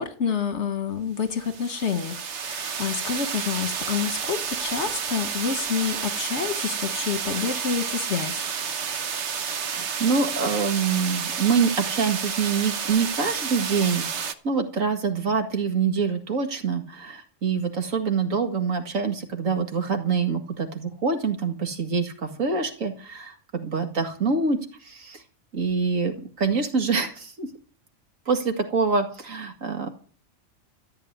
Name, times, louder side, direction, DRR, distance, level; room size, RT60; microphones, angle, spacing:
voice 1, 0.0-8.4, left 6 dB, 60° left, 1.6 m, -28 dB
sound 1, 1.3-14.3, right 7 dB, 60° right, 1.2 m, -30 dB
voice 2, 9.5-25.2 25.5-27.5 28.3-29.9, right 5 dB, 90° right, 2.4 m, -25 dB
14.0 x 8.0 x 9.5 m
omnidirectional pair, 1.3 m